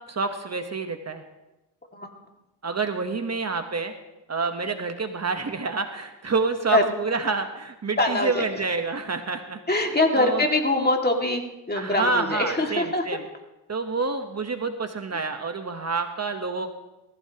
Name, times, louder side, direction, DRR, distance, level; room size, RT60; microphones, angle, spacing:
voice 1, 0.1-1.2 2.6-3.9 4.3-9.6 10.2-10.4 11.7-13.2 13.7-16.7, right 4 dB, 40° right, 6 dB, 1.1 m, -28 dB
voice 2, 8.0-8.6 9.7-11.4 11.7-13.1, left 2 dB, 25° left, 2 dB, 2.1 m, -23 dB
19.0 x 15.5 x 2.9 m, 1.0 s
cardioid pair, 90°, 41 cm